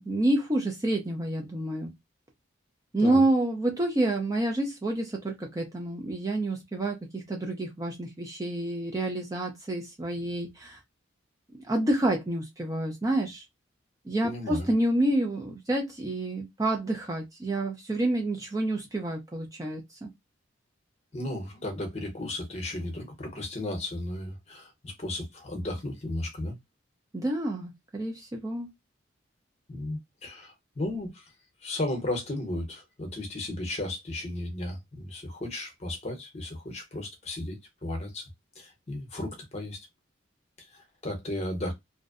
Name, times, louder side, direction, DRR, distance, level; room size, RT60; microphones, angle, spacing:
voice 1, 0.0-1.9 2.9-10.8 11.6-13.4 14.1-20.1 27.1-28.7, right 1 dB, 15° right, 0.4 m, -28 dB
voice 2, 14.2-14.7 21.1-26.6 29.7-31.3 31.6-37.6 37.8-38.2 38.6-39.8 40.6-41.7, left 1 dB, 30° left, 0.7 m, -35 dB
2.5 x 2.0 x 2.4 m
head